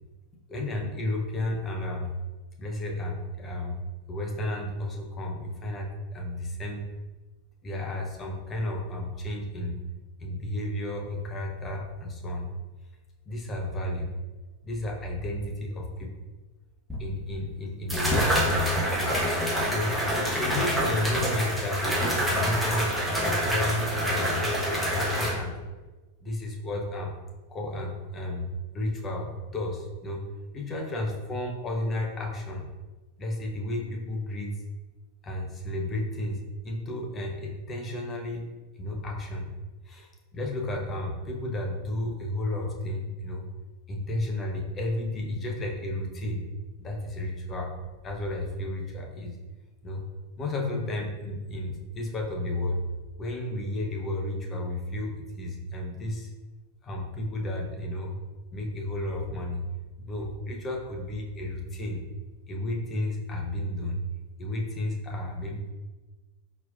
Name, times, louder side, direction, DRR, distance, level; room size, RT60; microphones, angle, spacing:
voice 1, 0.5-2.1 2.6-3.8 4.1-6.9 7.6-9.8 10.2-12.5 13.3-14.1 14.6-16.1 17.0-18.7 19.0-19.2 19.7-25.5 26.2-27.2 27.5-28.5 28.7-30.2 30.5-32.7 33.2-34.6 35.2-38.4 38.8-39.5 39.8-43.5 43.9-46.4 46.8-47.7 48.0-49.4 49.8-50.0 50.4-52.8 53.2-56.3 56.8-58.1 58.5-59.6 60.0-62.0 62.5-64.0 64.4-65.7, left 1 dB, 25° left, 0 dB, 0.8 m, -32 dB
sound 1, 16.9-17.0 17.9-25.3, equal, ahead, 1.3 m, -26 dB
4.3 x 4.1 x 2.5 m, 1.2 s
figure-of-eight pair, 90°, 0 cm